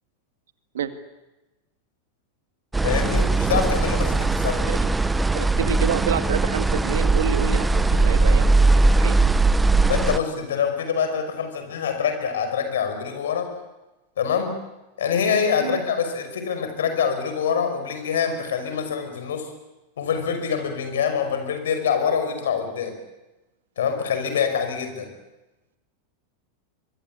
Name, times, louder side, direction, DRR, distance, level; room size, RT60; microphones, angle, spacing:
sound 1, 2.7-10.2, right 3 dB, 10° right, 1.1 m, -20 dB
voice 1, 2.8-4.7 9.9-13.5 14.2-14.5 15.0-19.5 20.0-23.0 23.8-25.1, left 7 dB, 70° left, 7 dB, 5.5 m, -25 dB
voice 2, 5.3-9.2 15.6-15.8, right 8 dB, 70° right, 10 dB, 2.1 m, -28 dB
24.5 x 23.0 x 8.5 m, 1.0 s
figure-of-eight pair, 90°, 0 cm